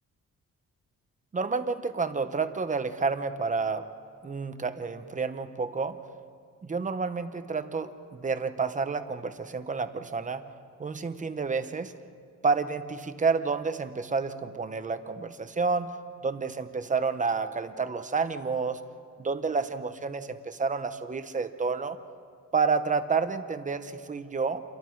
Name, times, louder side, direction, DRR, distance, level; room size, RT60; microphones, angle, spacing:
voice 1, 1.3-3.9 4.2-6.0 6.6-10.5 10.8-11.9 12.4-15.9 16.2-18.8 19.2-22.0 22.5-24.6, right 4 dB, 25° right, 10 dB, 0.8 m, -29 dB
29.0 x 23.5 x 4.6 m, 2.3 s
wide cardioid pair, 180°, 32 cm